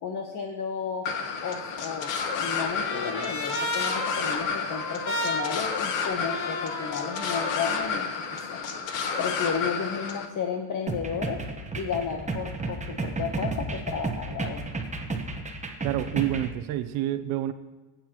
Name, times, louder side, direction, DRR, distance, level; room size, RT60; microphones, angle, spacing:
voice 1, 0.0-1.1 1.4-8.6 9.2-11.4 11.8-14.6, left 6 dB, 40° left, 3 dB, 1.2 m, -33 dB
sound 1, 1.1-10.3, left 5 dB, 65° left, 1.5 m, -31 dB
Trumpet, 1.6-7.9, left 2 dB, 80° left, 2.2 m, -34 dB
sound 2, 10.9-16.5, right 3 dB, 15° right, 1.3 m, -33 dB
voice 2, 15.8-17.5, right 13 dB, 75° right, 10 dB, 0.9 m, -28 dB
19.0 x 9.3 x 3.1 m, 1.3 s
cardioid pair, 110°, 48 cm